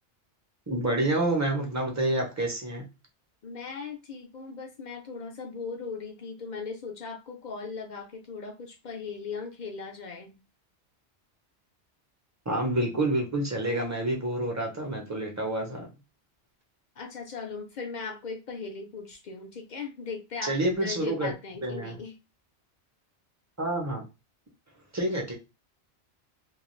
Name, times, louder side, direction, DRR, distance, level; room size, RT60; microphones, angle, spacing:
voice 1, 0.7-2.9 12.5-15.9 20.4-21.3 21.6-22.0 23.6-24.0 24.9-25.3, right 1 dB, 20° right, 0.5 m, -28 dB
voice 2, 3.4-10.4 17.0-22.2, left 5 dB, 60° left, 0.5 m, -38 dB
2.3 x 2.3 x 3.1 m
omnidirectional pair, 1.2 m